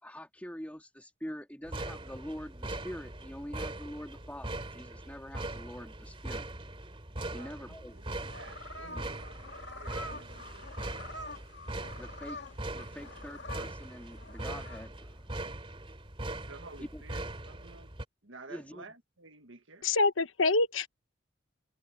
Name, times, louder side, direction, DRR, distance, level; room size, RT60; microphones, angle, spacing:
voice 1, 0.0-6.5 7.3-8.0 8.9-9.2 11.9-15.4 16.8-17.0 18.5-18.9, equal, 10° left, 2.6 m, -45 dB
sound 1, 1.6-18.0, right 2 dB, 30° right, 3.0 m, -41 dB
voice 2, 7.3-9.4 9.8-11.1 16.5-17.9 18.2-19.9, right 3 dB, 75° right, 1.7 m, -52 dB
sound 2, 7.9-14.8, left 2 dB, 60° left, 2.1 m, -46 dB
voice 3, 19.8-20.9, left 3 dB, 80° left, 1.2 m, -26 dB
head